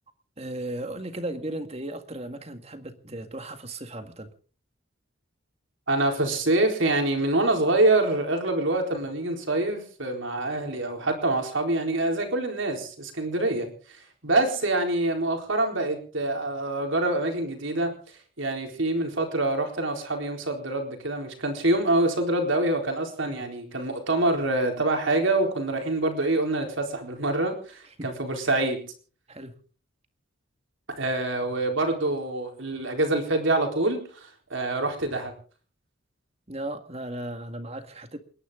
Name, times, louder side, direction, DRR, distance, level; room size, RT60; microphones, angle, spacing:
voice 1, 0.4-4.3 13.6-13.7 23.2-23.4 28.0-28.1 29.3-29.5 36.5-38.2, right 1 dB, 30° right, 1.9 m, -36 dB
voice 2, 5.9-17.9 18.4-28.8 30.9-35.3, right 2 dB, 70° right, 4.2 m, -26 dB
29.0 x 11.0 x 3.9 m
head